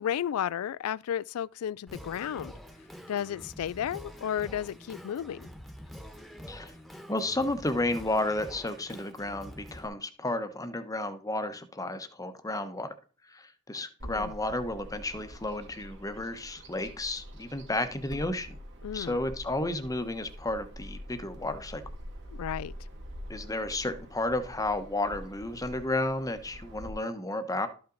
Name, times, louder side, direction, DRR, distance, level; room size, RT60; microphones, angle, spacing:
voice 1, 0.0-2.5 3.1-5.5 14.0-14.3 18.8-19.2 22.4-22.7, left 9 dB, 80° left, 0.3 m, -33 dB
Singing, 1.9-9.9, equal, ahead, 1.3 m, -46 dB
voice 2, 7.1-12.9 13.3-18.6 18.9-21.8 23.3-27.7, left 2 dB, 15° left, 1.0 m, -32 dB
Bird vocalization bird call bird song, 14.0-26.9, equal, 55° right, 2.2 m, -45 dB
12.5 x 5.6 x 3.9 m
head